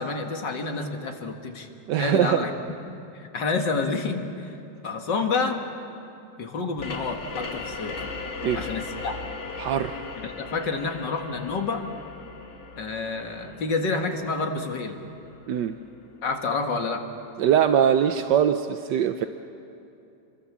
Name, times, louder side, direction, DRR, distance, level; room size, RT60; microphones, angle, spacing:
voice 1, 0.0-1.7 2.0-2.5 2.9-4.6 4.8-5.6 6.4-8.0 8.6-9.2 10.2-11.8 12.8-15.0 16.2-17.0, left 4 dB, 80° left, 4 dB, 2.5 m, -29 dB
voice 2, 1.9-2.4 8.4-8.7 9.6-10.0 15.5-15.7 17.4-19.3, right 9 dB, 80° right, 8 dB, 1.4 m, -22 dB
sound 1, 6.8-16.1, left 4 dB, 40° left, 1.7 m, -38 dB
29.5 x 23.0 x 7.4 m, 2.7 s
omnidirectional pair, 1.9 m